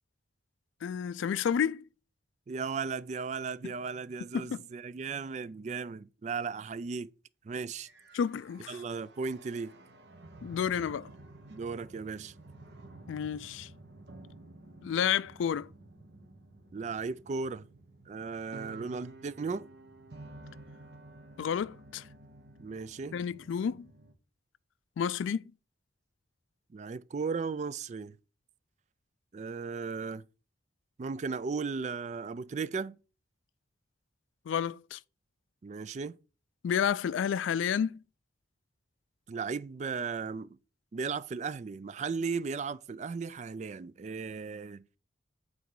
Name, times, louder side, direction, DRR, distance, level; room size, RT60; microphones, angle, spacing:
voice 1, 0.8-1.8 4.3-4.6 8.1-8.8 10.4-11.1 13.1-13.7 14.8-15.7 21.4-22.0 23.1-23.9 25.0-25.4 34.5-35.0 36.6-38.0, left 8 dB, 85° left, 0.3 m, -30 dB
voice 2, 2.5-7.1 7.4-7.9 8.7-9.7 11.5-12.3 16.7-17.7 18.1-19.7 22.6-23.2 26.7-28.1 29.3-30.2 31.0-33.0 35.6-36.1 39.3-40.5 40.9-44.8, right 5 dB, 35° right, 0.3 m, -36 dB
sound 1, 7.7-24.1, right 2 dB, 60° right, 1.1 m, -52 dB
8.0 x 4.0 x 4.7 m
head